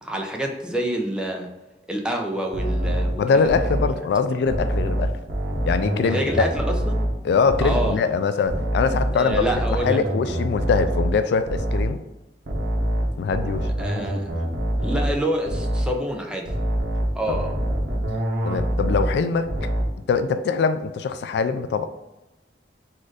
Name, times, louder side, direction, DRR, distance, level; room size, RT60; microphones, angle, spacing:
voice 1, 0.0-1.5 1.9-3.5 3.9-4.0 6.0-7.0 7.6-8.0 9.1-10.0 13.8-14.3 14.8-16.5 17.1-17.5, right 1 dB, 5° right, 1 dB, 0.6 m, -27 dB
sound 1, 2.5-4.0 4.5-7.2 7.5-8.0 8.5-12.0 12.5-15.2 15.5-16.0 16.4-19.2 19.4-20.0, equal, 80° right, 1.1 m, -25 dB
voice 2, 2.8-5.1 5.6-6.5 7.2-9.4 9.8-12.0 13.2-13.7 18.4-19.5 20.1-21.9, left 5 dB, 65° left, 10 dB, 0.3 m, -23 dB
4.2 x 2.5 x 4.7 m, 1.0 s
head